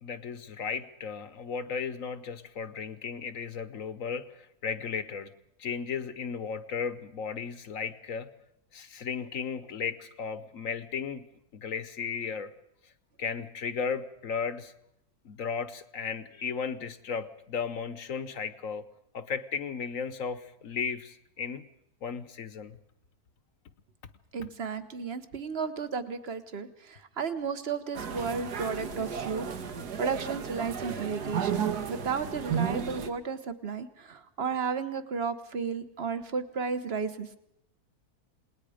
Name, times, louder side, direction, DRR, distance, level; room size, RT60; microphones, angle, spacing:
voice 1, 0.0-5.3 5.6-8.3 8.7-11.2 11.5-12.5 13.2-14.7 15.2-18.8 19.1-21.6 22.0-22.8, left 6 dB, 60° left, 13 dB, 1.3 m, -35 dB
voice 2, 24.3-37.4, right 5 dB, 45° right, 11 dB, 1.3 m, -33 dB
sound 1, 27.9-33.1, right 7 dB, 80° right, 1.9 m, -33 dB
28.0 x 19.5 x 5.0 m, 0.79 s
omnidirectional pair, 1.7 m